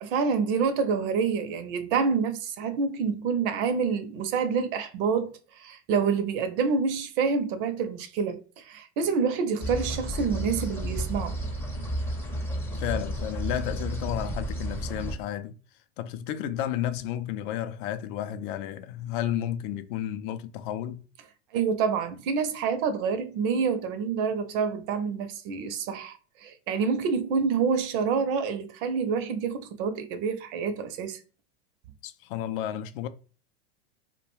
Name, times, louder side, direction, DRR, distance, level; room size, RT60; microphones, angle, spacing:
voice 1, 0.0-11.3 21.5-31.2, right 5 dB, 55° right, 0.5 m, -27 dB
sound 1, 9.6-15.1, equal, 5° left, 0.5 m, -32 dB
voice 2, 12.8-15.5 16.0-21.1 32.0-33.1, left 11 dB, 55° left, 0.4 m, -32 dB
2.4 x 2.2 x 3.0 m
hypercardioid pair, 110°, 33 cm